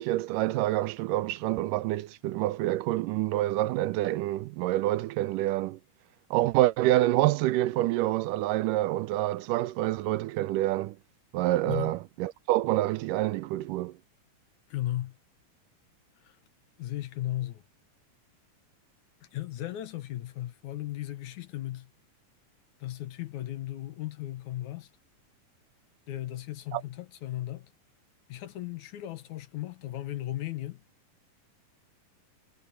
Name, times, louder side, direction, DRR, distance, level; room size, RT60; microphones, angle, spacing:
voice 1, 0.0-5.8 6.3-11.0 11.3-13.9 26.7-26.8, right 16 dB, 80° right, 2.2 m, -27 dB
voice 2, 14.7-15.2 16.2-16.4 16.8-17.6 19.3-21.9 22.8-24.9 26.1-27.7 28.3-30.8, left 14 dB, 70° left, 2.4 m, -36 dB
omnidirectional pair, 3.8 m